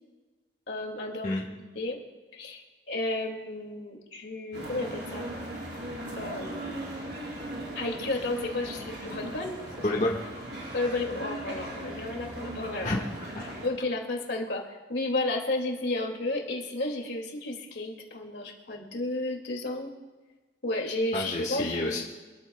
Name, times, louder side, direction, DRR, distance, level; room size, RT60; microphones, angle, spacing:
voice 1, 0.7-1.4 1.7-2.0 2.3-5.3 6.2-6.8 7.7-9.8 10.7-12.9 13.6-19.9 20.6-22.0, left 2 dB, 70° left, 1 dB, 2.4 m, -32 dB
sound 1, 4.5-13.7, right 1 dB, 70° right, 4.5 m, -38 dB
voice 2, 9.8-10.3 12.8-13.5 21.1-22.0, left 2 dB, 40° left, -3 dB, 1.6 m, -29 dB
25.5 x 14.0 x 2.3 m, 1.3 s
head